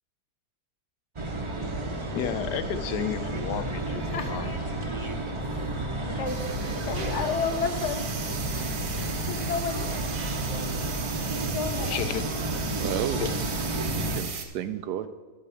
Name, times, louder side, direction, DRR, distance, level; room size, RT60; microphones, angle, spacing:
sound 1, 1.2-14.2, right 1 dB, 30° right, 0.6 m, -31 dB
voice 1, 2.0-4.5 11.8-12.3 13.2-13.3, left 9 dB, 80° left, 1.3 m, -32 dB
voice 2, 4.1-4.5 5.4-8.2 9.3-9.9 10.5-10.8 11.5-12.0, left 5 dB, 55° left, 1.0 m, -32 dB
sound 2, 6.3-14.5, right 6 dB, 60° right, 1.3 m, -37 dB
voice 3, 12.8-13.4 13.7-15.1, right 10 dB, 80° right, 1.2 m, -33 dB
12.0 x 4.8 x 6.9 m
omnidirectional pair, 1.8 m